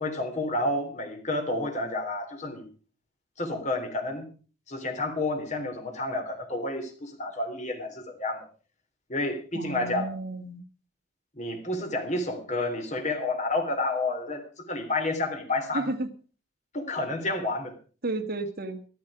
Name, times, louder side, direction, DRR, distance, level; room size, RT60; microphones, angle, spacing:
voice 1, 0.0-2.7 3.4-4.3 4.7-8.5 9.1-10.1 11.4-15.9 16.7-17.7, left 2 dB, 40° left, 5 dB, 3.5 m, -30 dB
voice 2, 9.5-10.6 15.7-16.1 18.0-18.8, right 2 dB, 50° right, 7 dB, 1.8 m, -32 dB
14.0 x 13.5 x 5.0 m, 0.38 s
head